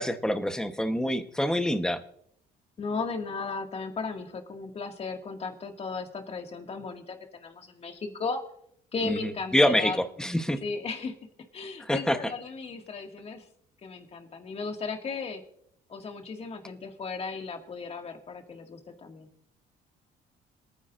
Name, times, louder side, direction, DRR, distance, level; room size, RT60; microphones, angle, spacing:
voice 1, 0.0-2.0 9.0-10.6 11.9-12.2, equal, 5° left, 8 dB, 1.0 m, -26 dB
voice 2, 2.8-8.4 8.9-10.0 10.6-11.1 11.5-13.4 13.8-15.4 15.9-19.3, left 4 dB, 35° left, 4 dB, 2.1 m, -35 dB
26.5 x 9.8 x 2.6 m, 0.69 s
cardioid pair, 110°, 17 cm